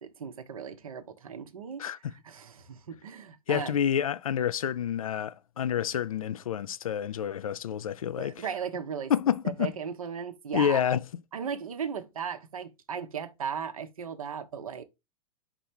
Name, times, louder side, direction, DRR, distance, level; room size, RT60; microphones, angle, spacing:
voice 1, 0.0-3.8 8.2-9.1 9.6-10.8 11.3-14.8, right 7 dB, 70° right, 1.1 m, -37 dB
voice 2, 1.8-2.1 3.5-8.5 9.1-9.7 10.5-11.0, left 9 dB, 70° left, 0.5 m, -28 dB
5.4 x 4.0 x 4.5 m
figure-of-eight pair, 100°, 19 cm